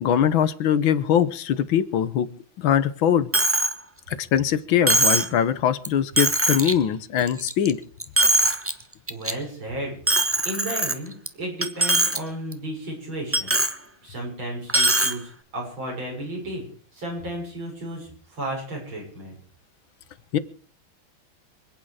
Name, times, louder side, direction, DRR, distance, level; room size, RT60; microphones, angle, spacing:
voice 1, 0.0-2.3 2.6-3.3 4.1-7.8 20.3-20.4, left 9 dB, 80° left, 14 dB, 1.8 m, -22 dB
Coin (dropping), 3.3-3.7 4.1-4.2 4.9-5.3 5.8-5.9 6.2-6.7 7.2-7.7 8.0-8.7 9.1-9.3 10.1-11.3 11.6-12.2 12.5-12.6 13.3-13.7 14.7-15.1, right 2 dB, 15° right, 0.5 m, -21 dB
voice 2, 9.1-10.0 10.4-11.1 11.4-13.5 14.0-16.7 16.9-19.3, right 1 dB, 80° right, -1 dB, 7.3 m, -33 dB
26.5 x 8.8 x 4.9 m, 0.43 s
omnidirectional pair, 2.2 m